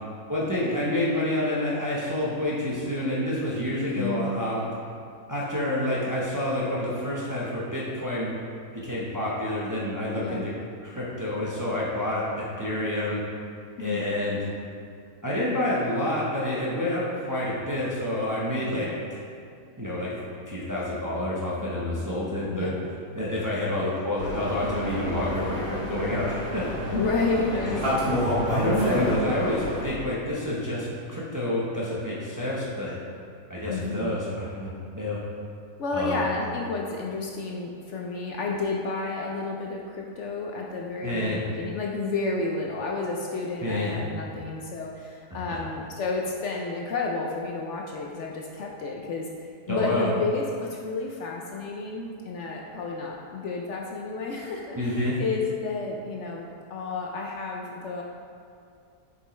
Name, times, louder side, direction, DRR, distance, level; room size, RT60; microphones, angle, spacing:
voice 1, 0.3-4.6 5.3-8.4 8.7-10.5 10.8-13.2 13.8-14.4 15.2-19.2 19.8-20.2 20.5-22.7 23.1-26.6 27.5-27.6 28.5-33.0 33.5-35.2 35.9-36.3 41.0-41.4 43.6-43.9 49.7-50.1 54.7-55.1, left 1 dB, 15° right, -7 dB, 0.8 m, -28 dB
voice 2, 3.9-4.4 10.2-10.5 13.8-14.1 18.7-19.0 22.4-22.8 26.9-27.9 33.7-34.2 35.8-58.0, left 3 dB, 65° left, -1 dB, 0.8 m, -31 dB
sound 1, 24.2-29.8, equal, 45° right, 1.7 m, -28 dB
6.9 x 5.3 x 3.2 m, 2.3 s
omnidirectional pair, 1.5 m